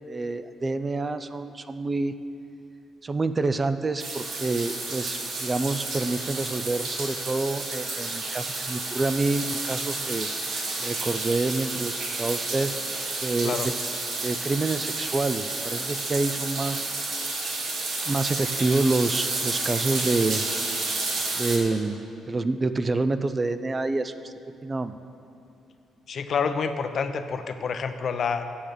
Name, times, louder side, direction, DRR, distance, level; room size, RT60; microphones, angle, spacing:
voice 1, 0.0-2.1 3.0-10.3 10.8-12.7 13.2-13.7 14.2-16.9 18.0-20.4 21.4-22.0 22.3-24.3 24.6-24.9, right 3 dB, 25° right, 11 dB, 0.3 m, -27 dB
sound 1, 4.0-21.6, right 3 dB, 65° right, 1.6 m, -31 dB
voice 2, 26.1-28.4, left 6 dB, 50° left, 9 dB, 0.6 m, -28 dB
8.6 x 7.5 x 6.7 m, 2.7 s
cardioid pair, 135°, 0 cm